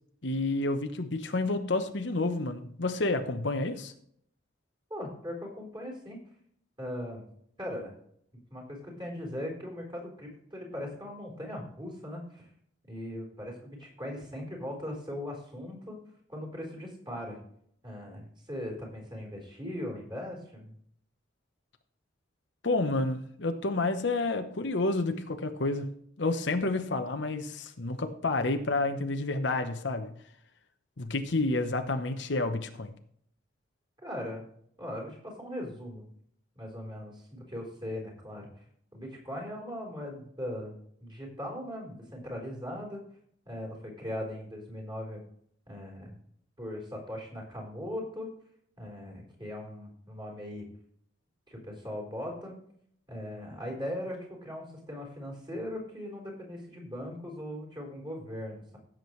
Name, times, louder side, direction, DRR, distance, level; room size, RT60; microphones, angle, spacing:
voice 1, 0.2-3.9 22.6-30.1 31.0-32.9, left 2 dB, 60° left, 0.9 m, -30 dB
voice 2, 4.9-6.2 6.8-7.3 7.6-7.9 8.5-12.5 12.8-16.0 16.3-17.4 17.8-20.8 34.0-34.5 34.8-36.1 36.5-38.6 38.9-40.7 41.0-43.0 43.5-45.2 45.7-46.1 46.6-48.3 48.8-50.7 51.5-52.6 53.1-58.8, left 1 dB, 25° right, 4.2 m, -39 dB
16.0 x 7.6 x 3.2 m
head